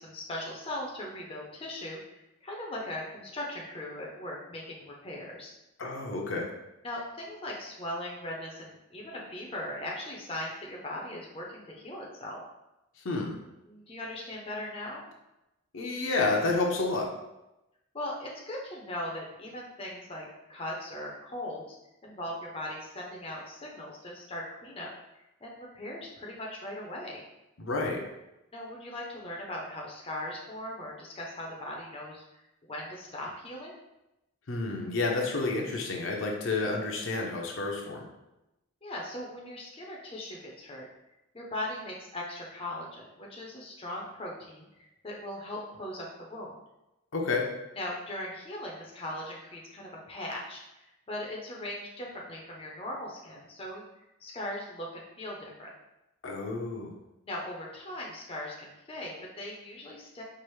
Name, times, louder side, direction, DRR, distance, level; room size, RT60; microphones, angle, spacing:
voice 1, 0.0-5.5 6.8-12.4 13.6-15.0 17.9-21.6 22.0-24.9 25.4-27.2 28.5-33.7 38.8-40.9 41.3-46.5 47.8-55.7 57.3-60.2, left 1 dB, 25° left, -2 dB, 0.6 m, -39 dB
voice 2, 5.8-6.5 13.0-13.4 15.7-17.1 27.6-28.0 34.5-38.1 47.1-47.4 56.2-56.9, left 3 dB, 65° left, 0 dB, 0.6 m, -30 dB
4.6 x 2.5 x 3.1 m, 0.93 s
head